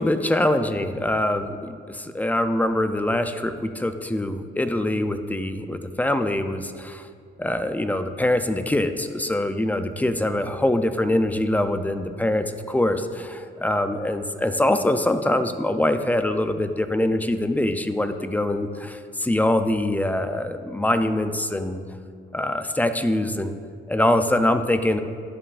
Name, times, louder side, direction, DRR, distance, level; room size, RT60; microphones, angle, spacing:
voice 1, 0.0-7.0 7.4-21.8 22.3-23.5 23.9-25.0, left 1 dB, 10° left, 9 dB, 0.4 m, -24 dB
11.0 x 5.4 x 2.5 m, 2.2 s
cardioid pair, 90°, 20 cm